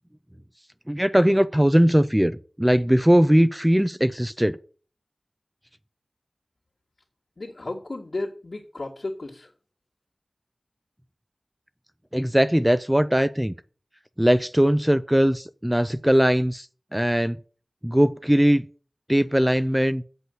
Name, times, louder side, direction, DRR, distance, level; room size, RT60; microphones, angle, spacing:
voice 1, 0.9-4.6 12.1-13.5 14.2-17.4 17.8-18.7 19.1-20.0, equal, 10° right, 0.5 m, -20 dB
voice 2, 7.4-9.5, left 2 dB, 70° left, 2.2 m, -33 dB
8.2 x 6.4 x 8.0 m
wide cardioid pair, 55°, 0 cm